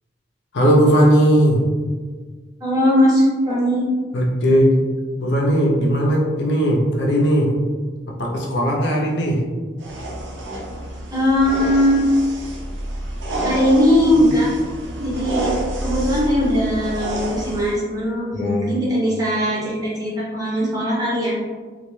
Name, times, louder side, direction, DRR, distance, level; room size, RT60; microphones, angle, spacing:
voice 1, 0.5-1.6 4.1-4.8 5.2-7.5 8.2-9.4 18.3-18.8, equal, 70° left, -2 dB, 0.5 m, -17 dB
voice 2, 2.6-3.9 11.1-12.0 13.4-14.5 15.0-15.5 15.8-21.3, equal, 20° right, -6 dB, 0.6 m, -19 dB
sound 1, 9.8-17.7, right 1 dB, 75° right, 0.4 m, -28 dB
2.3 x 2.2 x 3.0 m, 1.5 s
head